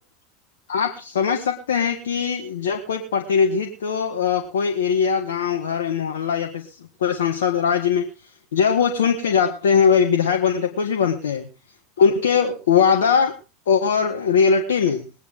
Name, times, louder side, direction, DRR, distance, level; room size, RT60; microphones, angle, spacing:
voice 1, 0.7-8.1 8.5-11.5 12.0-13.4 13.7-15.1, left 6 dB, 80° left, 2 dB, 1.8 m, -20 dB
21.5 x 9.4 x 3.8 m, 0.31 s
hypercardioid pair, 90°, 0 cm